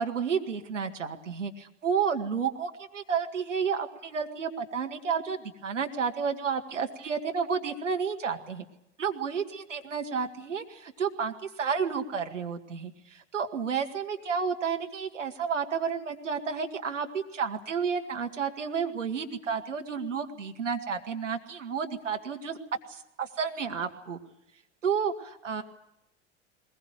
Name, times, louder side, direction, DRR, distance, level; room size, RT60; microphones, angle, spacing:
voice 1, 0.0-8.7 9.0-22.6 22.9-24.2 24.8-25.6, right 6 dB, 80° right, 5 dB, 2.0 m, -31 dB
21.0 x 20.5 x 9.0 m, 0.82 s
figure-of-eight pair, 80°, 36 cm